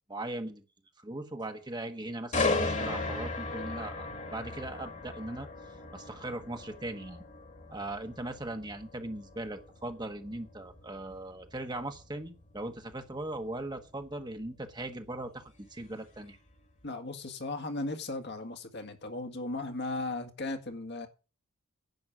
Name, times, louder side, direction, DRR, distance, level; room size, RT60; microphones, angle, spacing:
voice 1, 0.1-0.6 1.0-5.5 5.9-7.2 7.7-16.4, right 1 dB, 20° right, 1.3 m, -39 dB
sound 1, 2.3-16.2 16.6-16.8, left 3 dB, 35° left, 2.0 m, -37 dB
voice 2, 16.8-21.1, left 2 dB, 50° left, 1.8 m, -36 dB
11.0 x 8.6 x 6.2 m
head